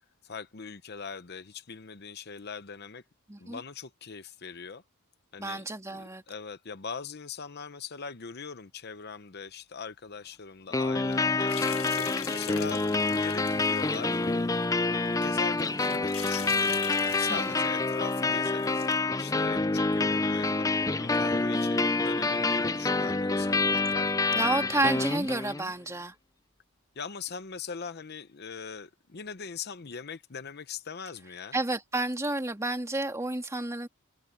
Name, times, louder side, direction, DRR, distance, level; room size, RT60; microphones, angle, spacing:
voice 1, 0.2-3.0 3.4-4.8 5.3-5.6 5.9-11.6 12.3-14.2 15.1-18.9 19.2-24.1 24.7-24.8 25.1-25.2 27.0-31.5, left 6 dB, 50° left, 0.8 m, -41 dB
voice 2, 3.3-3.6 5.4-6.2 12.5-12.8 17.3-17.7 22.2-22.5 24.3-26.1 31.5-33.9, right 2 dB, 15° right, 2.3 m, -31 dB
sound 1, 10.7-25.7, left 3 dB, 15° left, 0.5 m, -27 dB
sound 2, 11.1-14.3 14.6-14.7 15.4-17.7 17.9-18.0 18.5-19.0, left 9 dB, 80° left, 1.6 m, -41 dB
head